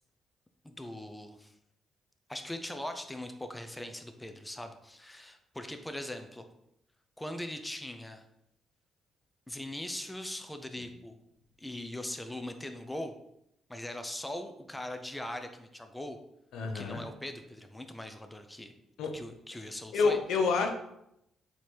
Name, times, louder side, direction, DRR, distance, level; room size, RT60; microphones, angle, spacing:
voice 1, 0.6-1.5 2.3-6.5 7.2-8.3 9.5-11.2 11.6-13.1 13.7-16.2 16.7-18.7 19.1-20.2, left 1 dB, 10° left, 7 dB, 0.4 m, -40 dB
voice 2, 16.5-17.0 19.0-19.1 19.9-20.7, left 4 dB, 85° left, 3 dB, 0.6 m, -28 dB
4.2 x 2.8 x 3.1 m, 0.81 s
cardioid pair, 90°, 0 cm